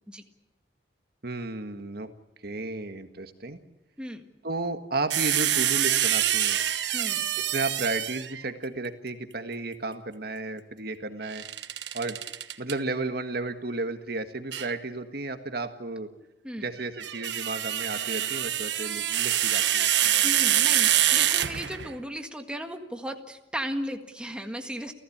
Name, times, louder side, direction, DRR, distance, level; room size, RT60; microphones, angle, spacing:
voice 1, 1.2-2.1 2.4-3.6 4.4-6.6 7.4-11.4 11.9-12.2 12.6-16.1 16.6-20.1, right 2 dB, 60° right, 8 dB, 1.7 m, -33 dB
sound 1, 5.1-8.4 11.3-12.7 14.5-14.7 16.8-22.0, right 11 dB, 80° right, 1.2 m, -25 dB
voice 2, 6.9-7.3 16.4-16.7 20.2-24.9, equal, 5° right, 4 dB, 1.7 m, -35 dB
29.5 x 15.5 x 8.7 m, 0.95 s
head